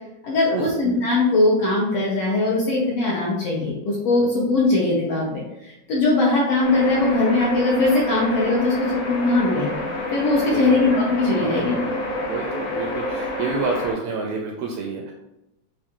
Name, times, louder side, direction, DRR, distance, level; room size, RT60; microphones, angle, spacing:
voice 1, 0.2-9.9 10.1-11.7, left 2 dB, 70° left, -5 dB, 1.5 m, -20 dB
sound 1, 6.6-13.9, left 1 dB, 85° left, 2.9 m, -28 dB
voice 2, 10.5-10.9 11.4-15.1, right 4 dB, 80° right, 0 dB, 1.6 m, -29 dB
6.5 x 2.6 x 2.9 m, 0.90 s
omnidirectional pair, 3.5 m